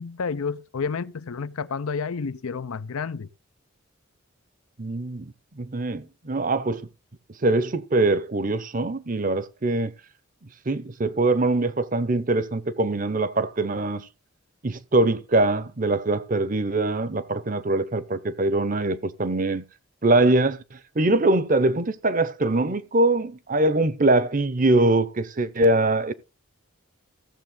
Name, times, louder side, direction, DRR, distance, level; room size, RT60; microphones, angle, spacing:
voice 1, 0.0-3.3, left 5 dB, 85° left, 0.6 m, -30 dB
voice 2, 4.8-5.2 5.6-6.9 7.4-9.9 10.7-14.1 14.6-19.6 20.0-26.1, right 2 dB, 40° right, 0.7 m, -23 dB
15.0 x 7.2 x 3.7 m
head